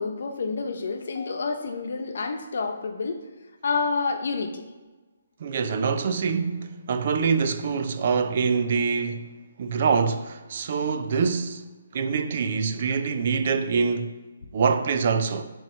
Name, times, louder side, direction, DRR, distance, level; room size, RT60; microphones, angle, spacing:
voice 1, 0.0-3.2 3.6-4.6, left 4 dB, 65° left, 0.8 m, -28 dB
voice 2, 5.4-11.7 11.9-14.1 14.5-15.4, right 5 dB, 50° right, 0.5 m, -25 dB
9.0 x 3.2 x 4.5 m
hypercardioid pair, 160°, 0 cm